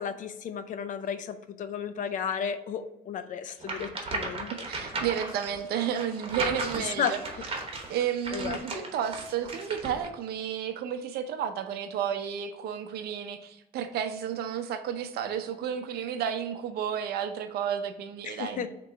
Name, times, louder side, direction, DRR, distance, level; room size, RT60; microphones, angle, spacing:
voice 1, 0.0-4.9 6.8-7.2 8.3-8.9 18.2-18.7, left 7 dB, 50° left, 12 dB, 0.4 m, -34 dB
sound 1, 3.6-10.1, right 3 dB, 35° right, 1.0 m, -36 dB
voice 2, 4.7-7.2 7.9-18.7, right 8 dB, 70° right, 8 dB, 0.6 m, -32 dB
3.8 x 3.0 x 4.4 m, 0.92 s
cardioid pair, 110°, 17 cm